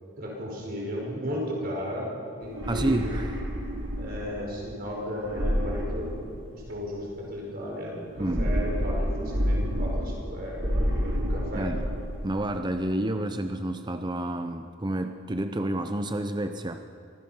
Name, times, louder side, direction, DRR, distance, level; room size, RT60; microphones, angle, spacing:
voice 1, 0.2-2.1 2.4-3.2 4.0-11.7, equal, 50° right, -2 dB, 4.9 m, -35 dB
sound 1, 2.4-4.3 5.2-6.7 8.1-10.3 10.6-12.3, equal, 70° right, 4.5 m, -29 dB
voice 2, 2.7-3.4 8.2-8.5 11.6-11.8 12.2-16.9, right 1 dB, 20° right, 7 dB, 0.7 m, -29 dB
25.5 x 19.0 x 5.7 m, 2.6 s
head